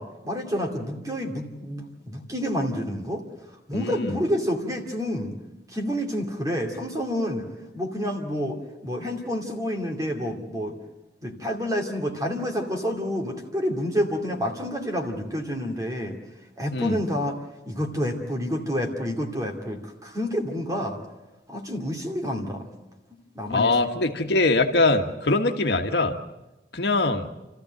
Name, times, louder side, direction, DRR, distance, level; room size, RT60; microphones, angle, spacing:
voice 1, 0.0-3.2 3.7-5.3 5.7-7.5 7.7-10.8 11.2-16.2 16.6-17.4 17.7-21.0 21.5-22.7 23.3-23.8, equal, 20° right, 2 dB, 2.6 m, -28 dB
voice 2, 3.7-4.1 16.7-16.9 23.5-26.1 26.7-27.3, left 2 dB, 75° left, 4 dB, 1.5 m, -22 dB
29.5 x 14.0 x 7.8 m, 1.0 s
head